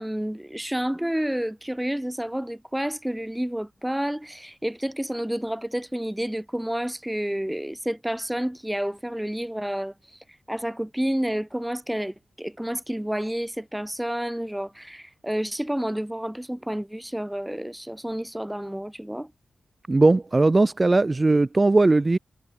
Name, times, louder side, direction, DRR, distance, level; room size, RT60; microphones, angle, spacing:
voice 1, 0.0-9.9 10.5-19.3, equal, 5° right, 1.8 m, -30 dB
voice 2, 19.9-22.2, right 2 dB, 25° right, 1.4 m, -19 dB
wide cardioid pair, 130°, 0 cm